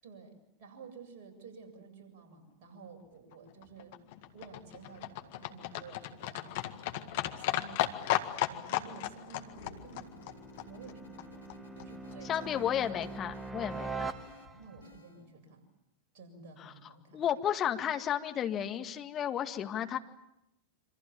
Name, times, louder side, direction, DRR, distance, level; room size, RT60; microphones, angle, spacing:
voice 1, 0.0-4.1 4.3-7.9 8.5-10.4 10.7-12.6 14.6-15.6 16.1-17.3, right 5 dB, 45° right, 3 dB, 7.7 m, -52 dB
Livestock farm animals working animals, 3.3-11.5 11.8-11.9 12.1-12.2 12.4-12.5 12.7-12.8 13.0-13.1 13.4-13.5 13.7-13.8 14.0-14.1, left 14 dB, 50° left, 1.9 m, -35 dB
sound 1, 8.5-14.9, right 4 dB, 10° right, 1.8 m, -44 dB
sound 2, 9.5-15.3, left 3 dB, 80° left, 3.5 m, -54 dB
voice 2, 12.3-14.1 16.6-16.7 17.1-20.0, left 10 dB, 30° left, 6 dB, 2.0 m, -33 dB
27.5 x 26.0 x 7.4 m, 0.85 s
figure-of-eight pair, 90°, 0 cm